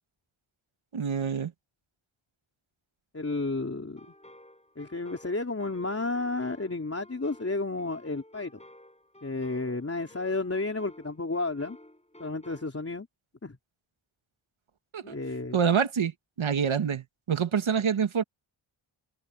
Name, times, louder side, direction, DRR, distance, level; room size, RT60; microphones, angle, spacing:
voice 1, 0.9-1.5 14.9-15.2 15.5-16.1 16.4-18.2, right 7 dB, 75° right, 2.0 m, -26 dB
voice 2, 3.1-4.0 4.8-8.6 9.2-11.8 12.2-13.1 13.4-13.6 15.0-15.6, left 3 dB, 30° left, 3.7 m, -32 dB
sound 1, 4.0-12.7, left 1 dB, 15° left, 7.0 m, -53 dB
wide cardioid pair, 100°, 48 cm